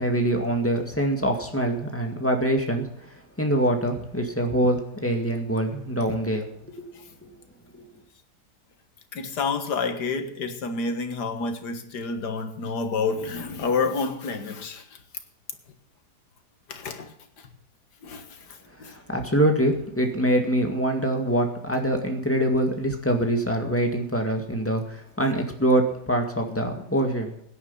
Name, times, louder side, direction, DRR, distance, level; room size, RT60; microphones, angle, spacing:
voice 1, 0.0-2.9 3.4-6.5 6.8-6.9 7.7-7.8 18.8-27.3, right 1 dB, 10° left, 1.9 m, -24 dB
voice 2, 9.1-14.8 16.7-17.1 18.0-18.3 18.8-19.0, left 4 dB, 75° left, 2.0 m, -28 dB
16.0 x 10.0 x 5.6 m
omnidirectional pair, 1.8 m